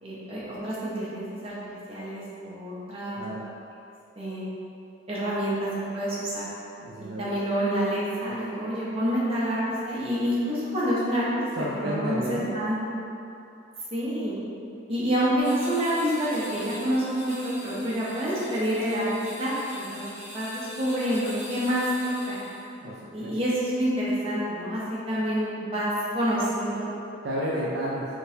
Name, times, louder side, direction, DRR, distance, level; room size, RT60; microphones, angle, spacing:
voice 1, 0.0-3.2 4.2-4.5 5.1-5.7 5.9-6.5 7.0-11.5 11.7-12.9 13.9-14.4 14.9-19.1 19.4-22.4 23.1-26.9, equal, 30° right, -8 dB, 0.7 m, -28 dB
voice 2, 6.8-7.3 11.6-12.6 22.8-23.3 27.2-28.1, equal, 55° right, -6 dB, 0.4 m, -31 dB
sound 1, 15.4-22.7, equal, 30° left, 1.3 m, -43 dB
3.6 x 2.8 x 2.7 m, 2.7 s
head